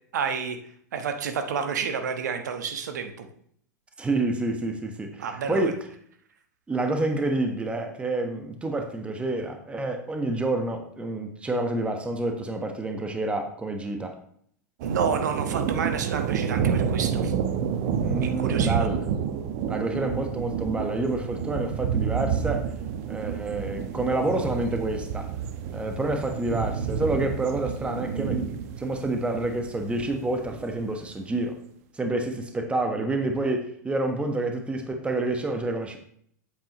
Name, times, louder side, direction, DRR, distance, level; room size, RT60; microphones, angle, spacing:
voice 1, 0.1-0.6 0.9-3.3 5.2-5.7 14.8-17.3 18.1-18.9, right 6 dB, 75° right, 7 dB, 1.2 m, -29 dB
voice 2, 4.0-5.8 6.7-14.2 18.0-19.0 19.7-22.7 23.1-25.3 25.7-31.6 31.9-36.0, right 2 dB, 10° right, 4 dB, 1.2 m, -28 dB
sound 1, 14.8-30.9, right 7 dB, 55° right, 0.9 m, -29 dB
8.6 x 8.1 x 3.0 m, 0.63 s
hypercardioid pair, 105°, 9 cm